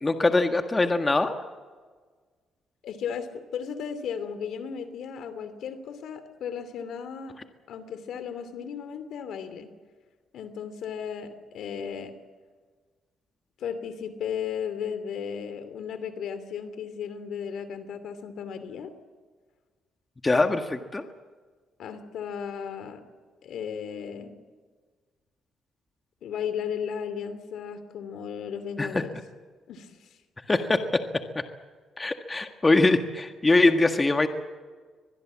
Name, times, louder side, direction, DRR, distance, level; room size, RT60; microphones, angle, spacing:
voice 1, 0.0-1.3 20.2-21.0 28.8-29.0 30.5-30.8 32.0-34.3, left 2 dB, 20° left, 6 dB, 1.7 m, -22 dB
voice 2, 2.8-7.4 7.7-9.7 10.3-12.1 13.6-18.9 21.8-23.0 23.4-24.3 26.2-29.2 29.7-30.1, left 7 dB, 75° left, 11 dB, 2.7 m, -35 dB
24.0 x 20.5 x 7.5 m, 1.5 s
cardioid pair, 90°, 0 cm